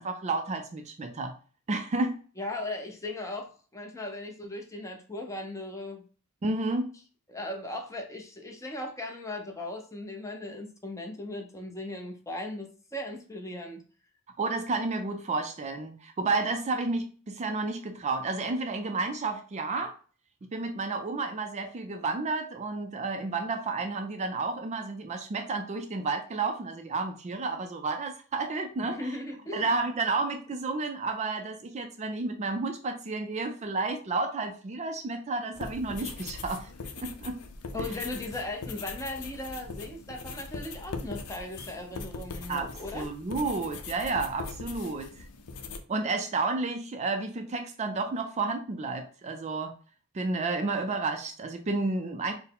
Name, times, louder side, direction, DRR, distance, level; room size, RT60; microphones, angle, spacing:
voice 1, 0.0-1.3 1.7-2.2 6.4-6.9 14.4-19.9 20.5-29.1 29.5-36.7 37.0-37.4 37.7-37.9 42.5-45.1 45.9-49.7 50.1-52.3, right 3 dB, 30° right, 6 dB, 0.4 m, -31 dB
voice 2, 2.4-6.1 7.3-13.8 28.9-29.7 37.7-43.1, left 1 dB, 15° left, 2 dB, 0.6 m, -38 dB
sound 1, 35.5-45.8, left 4 dB, 90° left, 0.5 m, -40 dB
4.5 x 2.1 x 3.4 m, 0.40 s
head